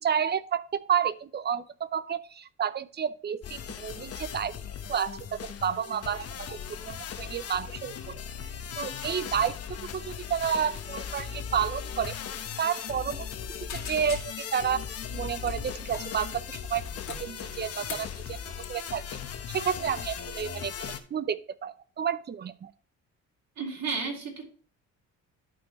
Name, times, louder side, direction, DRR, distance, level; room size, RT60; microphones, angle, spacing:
voice 1, 0.0-4.5 4.9-8.2 8.8-12.2 12.6-13.3 13.7-14.9 15.1-16.8 17.1-18.4 18.7-19.0 19.5-22.7, right 8 dB, 35° right, 16 dB, 0.6 m, -31 dB
sound 1, 3.4-21.0, left 7 dB, 55° left, 1.1 m, -38 dB
sound 2, 12.0-12.2 12.4-12.6 13.0-13.4 13.7-14.6 15.4-16.1 16.7-18.1 18.6-18.9, left 7 dB, 75° left, 2.1 m, -42 dB
voice 2, 23.6-24.4, right 4 dB, 60° right, -1 dB, 3.2 m, -32 dB
12.5 x 4.5 x 3.1 m, 0.40 s
cardioid pair, 90°, 30 cm